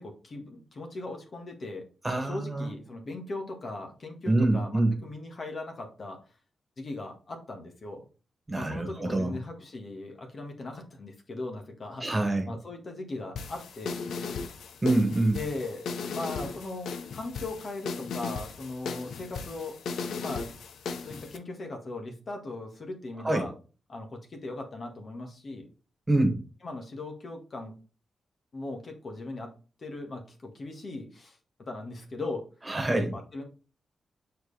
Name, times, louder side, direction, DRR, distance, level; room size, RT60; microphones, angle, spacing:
voice 1, 0.0-1.9 2.2-6.2 6.8-8.0 8.5-12.1 12.5-14.0 15.4-19.8 20.2-20.5 21.0-23.5 23.9-25.7 26.6-27.7 28.5-29.5 29.8-31.4 31.7-32.5 32.9-33.4, left 2 dB, 50° left, 3 dB, 1.7 m, -38 dB
voice 2, 2.0-2.7 4.3-5.0 8.5-9.4 12.0-12.5 14.8-15.4 23.2-23.4 26.1-26.4 32.7-33.1, right 2 dB, 20° right, 4 dB, 2.0 m, -25 dB
sound 1, 13.4-21.4, left 5 dB, 85° left, 0.7 m, -37 dB
6.4 x 4.7 x 3.3 m, 0.35 s
cardioid pair, 75°, 0 cm